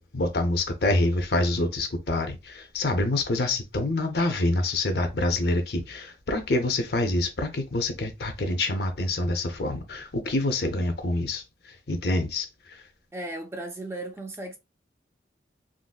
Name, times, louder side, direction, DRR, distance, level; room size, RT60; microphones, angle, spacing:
voice 1, 0.1-11.4 11.9-12.5, left 2 dB, 60° left, 0.6 m, -26 dB
voice 2, 13.1-14.6, right 1 dB, 15° right, 0.4 m, -36 dB
3.7 x 2.0 x 2.3 m
head